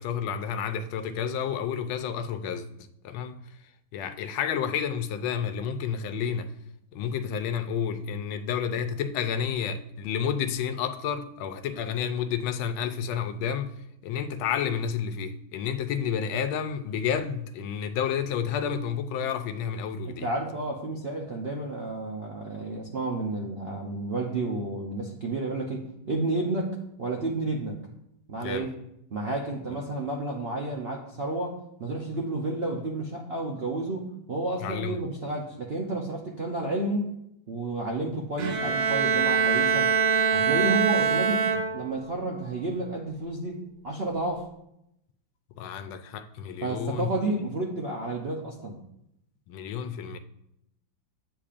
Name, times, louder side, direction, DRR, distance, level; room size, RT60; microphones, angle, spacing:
voice 1, 0.0-2.6 3.0-3.4 3.9-6.5 6.9-13.7 14.0-20.3 28.4-28.7 29.7-29.8 34.6-35.0 45.6-47.1 49.5-50.2, left 7 dB, 85° left, 1.4 m, -30 dB
voice 2, 20.0-27.8 28.3-28.8 29.1-37.1 37.5-39.9 40.3-41.5 41.7-44.5 46.6-48.8, right 2 dB, 65° right, 0.6 m, -31 dB
Bowed string instrument, 38.4-42.1, right 6 dB, 80° right, 1.6 m, -24 dB
8.4 x 8.1 x 2.5 m
omnidirectional pair, 2.1 m